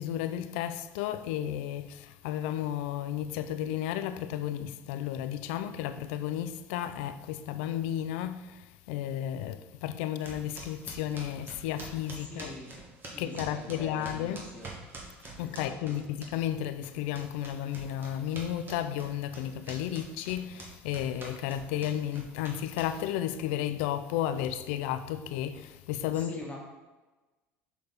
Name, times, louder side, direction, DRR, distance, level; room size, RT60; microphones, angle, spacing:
voice 1, 0.0-12.5 13.2-14.4 15.4-26.3, left 11 dB, 80° left, 0.4 m, -33 dB
sound 1, 10.2-16.6 16.8-23.2, right 3 dB, 35° right, 1.8 m, -45 dB
voice 2, 12.2-12.7 13.1-14.7 15.4-16.0 26.1-26.6, left 1 dB, 20° left, 1.7 m, -44 dB
6.7 x 4.5 x 4.1 m
hypercardioid pair, 80°, 6 cm